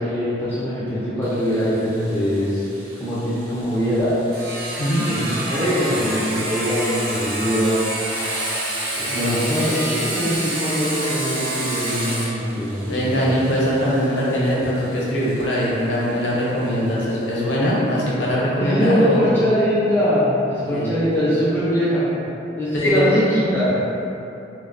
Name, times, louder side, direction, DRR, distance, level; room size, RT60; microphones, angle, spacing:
voice 1, 0.0-2.6 3.0-4.1 5.1-7.8 9.0-13.3 18.6-22.1 22.6-23.7, equal, 10° left, -11 dB, 0.3 m, -22 dB
Sawing, 1.2-16.7, right 1 dB, 50° right, 0.5 m, -29 dB
voice 2, 9.1-9.5 12.8-19.3 20.6-20.9 22.7-23.1, equal, 75° left, -6 dB, 0.6 m, -21 dB
2.5 x 2.0 x 2.4 m, 2.8 s
head